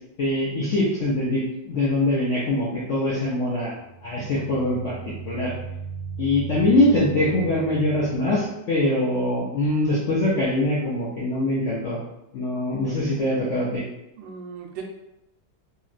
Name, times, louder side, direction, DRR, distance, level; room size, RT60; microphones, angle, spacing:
voice 1, 0.2-5.0 5.2-5.5 6.2-12.0 12.3-13.8, left 1 dB, 85° left, -6 dB, 0.6 m, -23 dB
sound 1, 3.9-8.5, right 6 dB, 55° right, 0.3 m, -37 dB
voice 2, 14.2-14.8, right 6 dB, 75° right, 1 dB, 1.2 m, -38 dB
3.0 x 2.8 x 2.4 m, 0.89 s
omnidirectional pair, 2.0 m